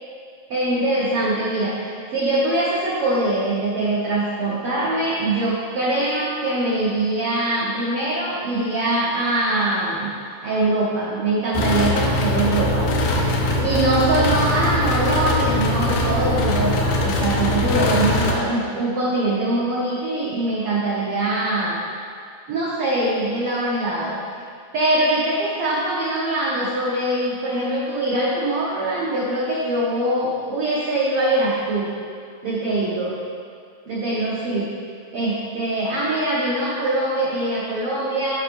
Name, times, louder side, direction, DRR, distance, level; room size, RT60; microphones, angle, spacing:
voice 1, 0.5-10.1 10.4-12.9 13.6-21.8 22.5-24.2 24.7-31.9 32.4-33.2 33.9-34.7 35.1-38.3, right 2 dB, 75° right, -6 dB, 1.3 m, -23 dB
sound 1, 11.5-18.3, left 1 dB, 85° left, 2.4 m, -21 dB
9.0 x 6.0 x 3.4 m, 2.3 s
omnidirectional pair, 3.8 m